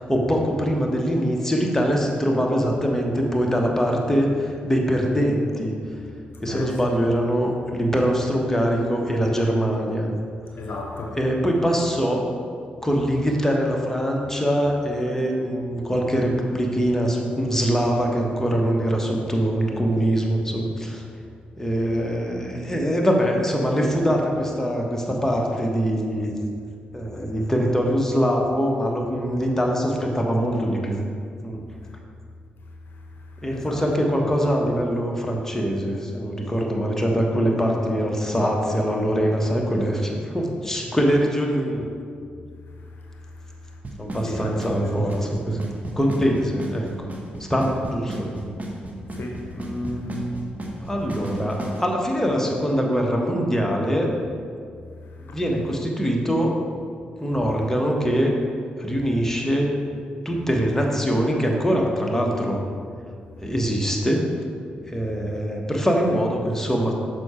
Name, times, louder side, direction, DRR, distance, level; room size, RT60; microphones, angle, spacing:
voice 1, 0.0-5.7 6.4-10.1 11.2-12.2 12.8-21.0 21.6-26.3 26.9-31.0 31.4-31.6 33.4-41.9 44.0-45.6 46.0-47.1 47.4-48.3 49.5-50.3 50.8-54.1 55.3-56.5 57.2-58.3 58.8-59.7 60.2-62.6 63.4-64.3 64.9-67.0, equal, 10° left, 0 dB, 1.3 m, -23 dB
voice 2, 6.3-6.8 10.5-11.2 31.8-31.9 32.9-33.8 42.8-43.8 44.2-45.2 49.1-50.1 55.0-55.4, left 2 dB, 60° left, 1 dB, 0.8 m, -36 dB
Drum kit / Snare drum / Bass drum, 43.8-51.8, right 2 dB, 40° right, 1.3 m, -33 dB
6.3 x 4.7 x 4.3 m, 2.2 s
hypercardioid pair, 40°, 4 cm